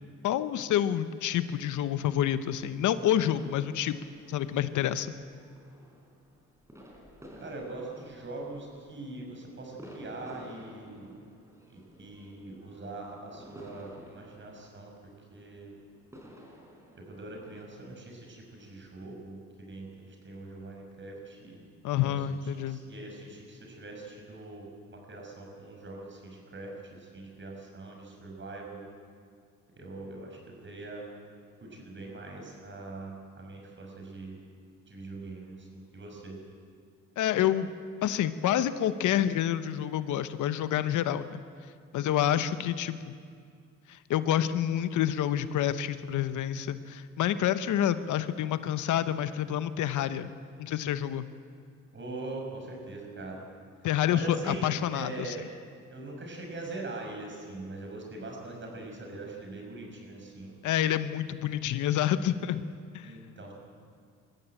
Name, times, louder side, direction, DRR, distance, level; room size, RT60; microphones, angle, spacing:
voice 1, 0.2-4.0 4.3-5.1 21.8-22.8 37.2-37.7 38.0-41.4 41.9-43.1 43.9-50.3 50.6-51.3 53.8-55.3 60.6-62.6 62.9-63.1, left 11 dB, 80° left, 12 dB, 1.0 m, -28 dB
sound 1, 1.2-17.6, equal, 10° right, 4.7 m, -53 dB
voice 2, 7.4-11.1 11.7-15.7 17.0-21.6 21.9-28.9 29.8-31.0 31.6-34.4 34.9-36.4 51.9-53.4 54.1-55.5 55.9-60.6 63.0-63.5, right 2 dB, 40° right, 1 dB, 6.0 m, -42 dB
21.5 x 14.5 x 9.1 m, 2.2 s
cardioid pair, 90°, 30 cm